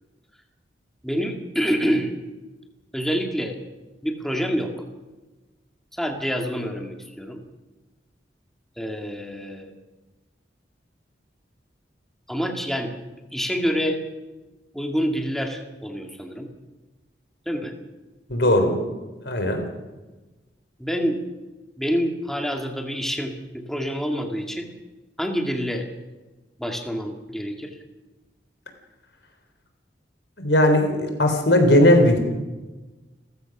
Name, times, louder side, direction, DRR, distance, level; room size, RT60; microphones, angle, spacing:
voice 1, 1.0-2.1 2.9-3.6 4.0-4.7 5.9-7.4 8.8-9.7 12.3-13.0 13.3-14.0 14.7-16.5 17.5-17.7 20.8-21.2 21.8-24.7 25.2-25.9 26.6-27.8, equal, ahead, 3 dB, 2.1 m, -27 dB
voice 2, 18.3-18.9 19.2-19.7 30.4-32.2, left 1 dB, 70° left, 5 dB, 3.8 m, -18 dB
30.0 x 15.0 x 6.1 m, 1.2 s
head